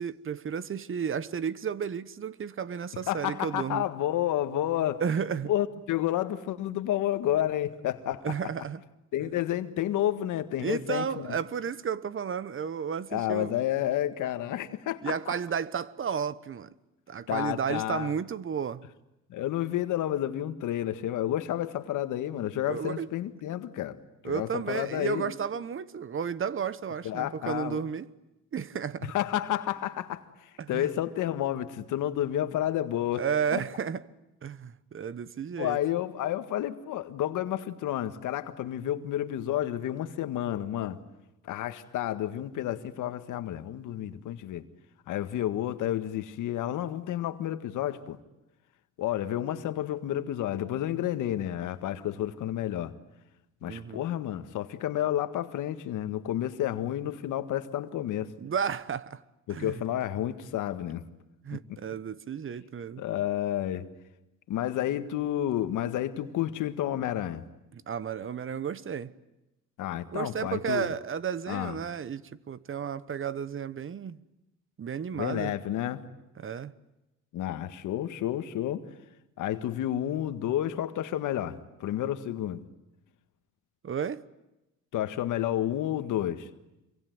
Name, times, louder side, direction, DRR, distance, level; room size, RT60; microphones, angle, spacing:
voice 1, 0.0-3.8 5.0-5.5 8.2-8.8 10.6-13.5 15.0-16.7 17.1-18.8 22.7-23.1 24.2-28.1 28.5-29.1 30.6-30.9 33.2-34.0 34.4-35.8 53.7-54.0 58.4-59.2 59.5-59.8 61.4-63.0 67.7-69.1 70.1-74.2 74.8-75.5 76.4-76.7 83.8-84.2, right 7 dB, 45° right, 1.1 m, -33 dB
voice 2, 3.1-5.0 5.5-8.3 9.1-11.3 13.1-15.1 17.3-18.1 19.3-24.0 24.2-25.3 27.0-27.8 29.1-33.2 33.5-33.6 35.6-41.0 41.4-44.6 45.1-48.2 49.0-52.9 53.6-58.3 59.5-61.0 61.5-61.6 63.0-63.8 64.5-67.4 69.8-70.9 71.5-71.8 75.1-76.0 77.3-78.9 79.4-82.6 84.9-86.5, left 12 dB, 85° left, 1.7 m, -30 dB
26.5 x 23.5 x 9.4 m
cardioid pair, 90°, 30 cm